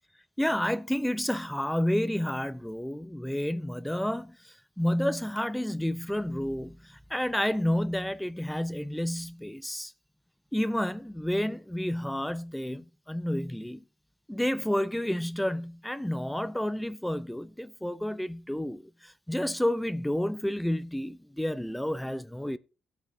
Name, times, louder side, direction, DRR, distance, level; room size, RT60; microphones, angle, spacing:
voice 1, 0.4-9.9 10.5-13.8 14.3-22.6, left 1 dB, 5° left, 0.5 m, -30 dB
16.5 x 8.5 x 2.6 m
cardioid pair, 90°, 0 cm